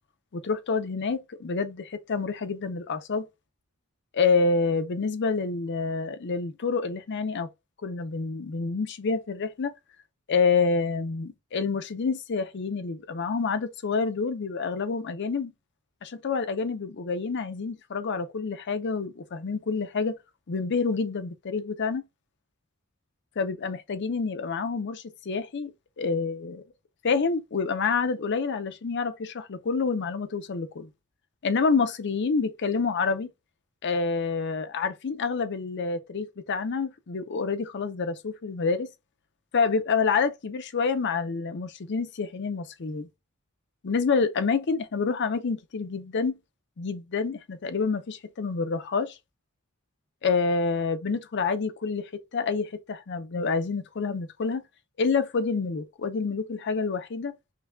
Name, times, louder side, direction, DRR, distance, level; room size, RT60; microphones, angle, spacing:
voice 1, 0.3-3.3 4.1-7.5 7.8-9.7 10.3-15.5 16.0-20.2 20.5-22.0 23.4-25.7 26.0-26.6 27.0-30.9 31.4-33.3 33.8-38.9 39.5-43.1 43.8-46.4 46.8-49.2 50.2-54.6 55.0-57.3, left 4 dB, 55° left, 0.5 m, -28 dB
5.8 x 2.2 x 2.2 m
head